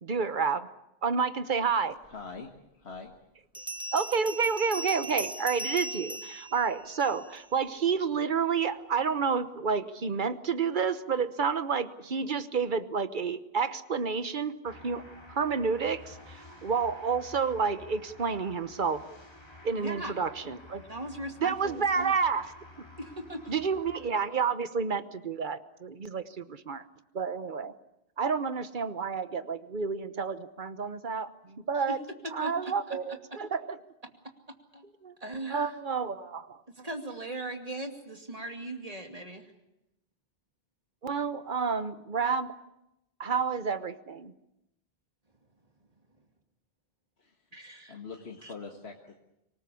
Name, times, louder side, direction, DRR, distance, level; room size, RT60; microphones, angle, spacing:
voice 1, 0.0-0.7 1.0-2.0 3.9-19.1 19.6-20.8 21.4-22.5 23.5-26.8 27.1-27.7 28.2-32.0 32.3-33.8 35.0-35.1 35.5-36.6 41.0-42.5 43.2-44.3, right 5 dB, 55° right, 12 dB, 1.2 m, -30 dB
voice 2, 2.1-2.5 2.7-3.1 47.2-47.6 47.9-49.2, left 4 dB, 85° left, 2 dB, 2.0 m, -43 dB
Bell, 2.3-2.4 3.5-7.4, right 1 dB, 5° right, 1.1 m, -38 dB
sound 1, 14.6-24.1, left 1 dB, 25° left, 3.0 m, -51 dB
voice 3, 19.7-20.2 20.9-22.1 23.0-23.6 31.9-32.0 32.4-33.0 34.7-34.8 35.2-35.8 36.8-39.5 47.5-47.9 48.4-48.5, right 1 dB, 35° right, 4 dB, 2.5 m, -39 dB
25.0 x 19.5 x 8.4 m, 0.88 s
omnidirectional pair, 1.0 m